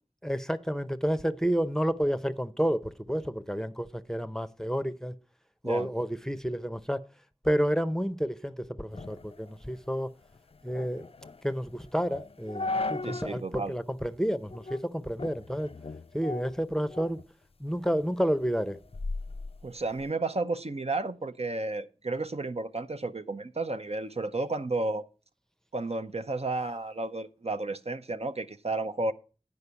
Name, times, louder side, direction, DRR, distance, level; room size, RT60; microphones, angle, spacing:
voice 1, 0.2-5.1 5.6-7.0 7.4-10.1 10.6-11.0 11.4-15.7 16.1-17.2 17.6-18.8, equal, 5° left, 0.6 m, -30 dB
sound 1, 8.9-13.4 13.8-13.9 14.5-14.9 15.2-17.3 17.7-20.1, left 3 dB, 55° left, 0.4 m, -38 dB
voice 2, 13.0-13.7 19.6-25.0 25.7-29.1, right 2 dB, 60° right, 0.6 m, -32 dB
9.6 x 5.2 x 6.8 m
wide cardioid pair, 45°, 12 cm